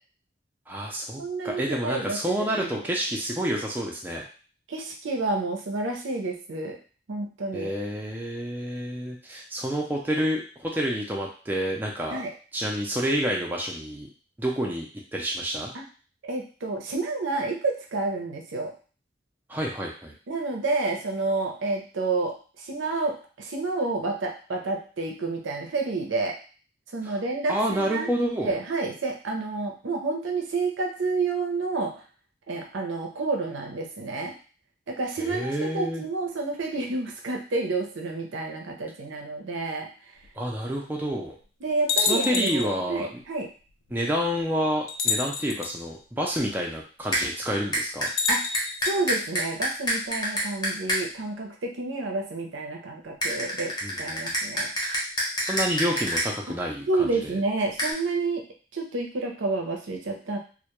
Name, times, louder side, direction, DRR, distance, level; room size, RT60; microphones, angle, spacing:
voice 1, 0.7-4.2 7.5-12.2 12.5-14.1 14.4-15.7 19.5-20.1 27.0-27.2 27.5-28.5 35.2-36.0 40.4-41.4 42.0-43.2 43.9-48.1 53.8-54.1 55.4-57.4, equal, 10° right, -1 dB, 0.3 m, -29 dB
voice 2, 1.2-2.8 4.7-6.8 7.1-7.7 12.1-12.3 15.7-15.8 16.2-18.7 20.3-26.3 26.9-28.1 28.4-31.9 32.5-34.3 34.9-39.9 41.6-43.5 48.3-48.4 48.8-54.7 56.9-58.5 58.7-60.4, right 3 dB, 85° right, 1 dB, 0.6 m, -29 dB
sound 1, 40.2-40.3 41.1-41.2 41.9-42.7 43.9-44.0 44.9-45.7 48.1-49.0, left 5 dB, 80° left, 0.4 m, -28 dB
sound 2, 47.1-47.2 47.7-51.0 53.2-56.3 57.8-57.9, equal, 20° left, 0.7 m, -26 dB
2.1 x 2.1 x 2.9 m, 0.38 s
head